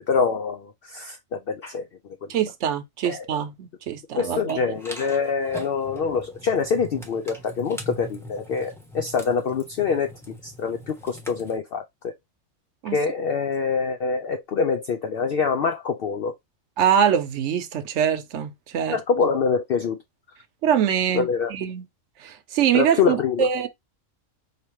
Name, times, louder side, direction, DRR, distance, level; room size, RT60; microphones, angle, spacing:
voice 1, 0.0-1.9 3.0-3.2 4.1-10.1 10.4-12.1 12.9-16.3 18.9-20.0 21.1-21.5 22.7-23.5, left 5 dB, 60° left, 0.6 m, -25 dB
voice 2, 2.3-4.8 12.8-13.0 16.8-19.0 20.6-21.8 22.2-23.7, right 8 dB, 70° right, 1.0 m, -24 dB
sound 1, 4.5-11.6, equal, ahead, 0.9 m, -41 dB
4.9 x 2.8 x 3.0 m
omnidirectional pair, 1.3 m